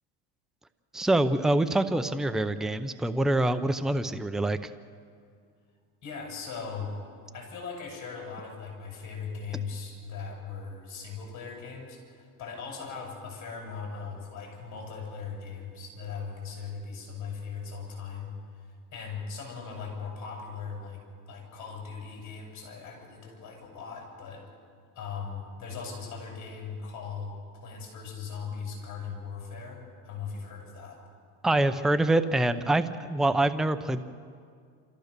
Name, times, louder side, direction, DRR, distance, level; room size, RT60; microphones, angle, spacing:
voice 1, 0.9-4.7 31.4-34.0, right 2 dB, ahead, 9 dB, 0.6 m, -25 dB
voice 2, 6.0-6.9 7.3-24.4 24.9-31.0, left 5 dB, 45° left, 0 dB, 7.8 m, -39 dB
27.5 x 15.0 x 6.8 m, 2.2 s
supercardioid pair, 125°, 41 cm